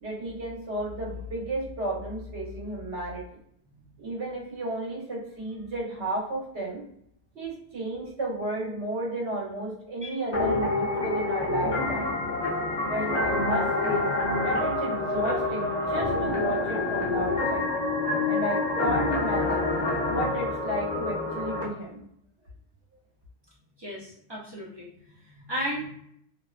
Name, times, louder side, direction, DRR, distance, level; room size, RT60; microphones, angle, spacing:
voice 1, 0.0-3.4 4.0-6.8 7.3-12.2 12.8-14.0 14.4-17.7 18.3-19.7 20.1-22.0, right 1 dB, 75° right, -4 dB, 1.2 m, -33 dB
sound 1, 10.3-21.6, left 2 dB, 45° left, 0.7 m, -27 dB
voice 2, 23.8-25.9, equal, 45° right, -4 dB, 0.3 m, -35 dB
2.6 x 2.0 x 2.4 m, 0.68 s
omnidirectional pair, 1.1 m